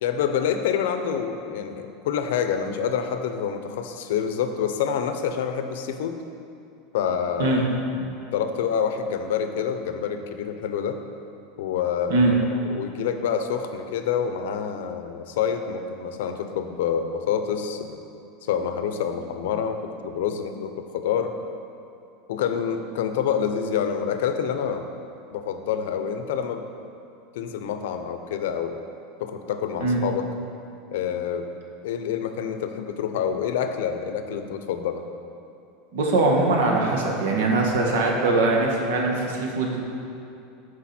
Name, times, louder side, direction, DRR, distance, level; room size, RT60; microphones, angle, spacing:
voice 1, 0.0-6.2 6.9-11.0 11.6-18.0 18.4-21.3 22.3-24.9 25.3-26.6 27.3-28.8 29.2-30.3 30.9-31.5 31.8-35.1, left 7 dB, 70° left, 7 dB, 0.6 m, -27 dB
voice 2, 35.9-39.8, right 2 dB, 80° right, 0 dB, 1.6 m, -21 dB
13.5 x 4.9 x 4.3 m, 2.6 s
supercardioid pair, 180°, 0 cm